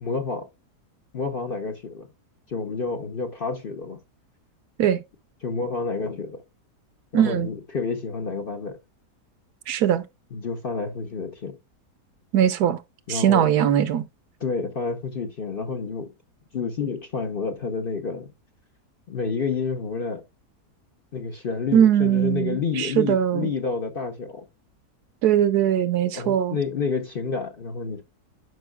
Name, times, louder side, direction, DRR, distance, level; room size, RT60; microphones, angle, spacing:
voice 1, 0.0-0.5 1.1-2.1 2.5-4.0 5.4-6.4 7.1-8.8 10.3-11.6 13.1-13.5 14.4-16.1 16.5-18.3 19.1-20.2 21.1-24.4 26.1-28.0, left 4 dB, 45° left, 0.8 m, -29 dB
voice 2, 7.1-7.5 9.7-10.0 12.3-12.8 13.1-14.0 21.7-23.5 25.2-26.6, right 10 dB, 75° right, 1.2 m, -20 dB
11.0 x 5.3 x 2.3 m
omnidirectional pair, 1.7 m